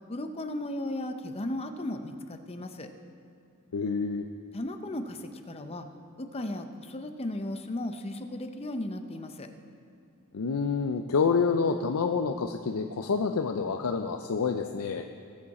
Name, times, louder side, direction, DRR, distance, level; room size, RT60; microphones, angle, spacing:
voice 1, 0.1-2.9 4.5-5.9 6.2-9.5, left 1 dB, 30° left, 7 dB, 0.7 m, -35 dB
voice 2, 3.7-4.3 10.3-15.0, left 5 dB, 80° left, 5 dB, 0.5 m, -28 dB
19.5 x 7.2 x 4.2 m, 2.7 s
head